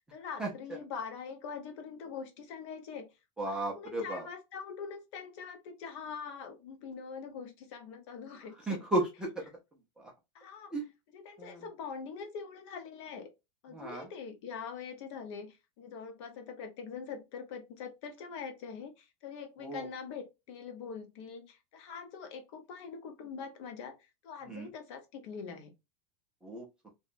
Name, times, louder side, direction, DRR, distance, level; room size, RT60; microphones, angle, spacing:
voice 1, 0.1-3.1 3.5-8.8 10.3-10.8 11.1-13.3 13.6-24.0 24.2-25.7, left 6 dB, 50° left, 0.7 m, -43 dB
voice 2, 3.4-4.3 8.7-9.3 10.0-10.1 10.7-10.9 11.4-11.6 13.7-14.1 19.6-19.8 24.5-24.7 26.4-26.9, right 2 dB, 5° right, 0.4 m, -34 dB
2.8 x 2.2 x 2.4 m
supercardioid pair, 170°, 19 cm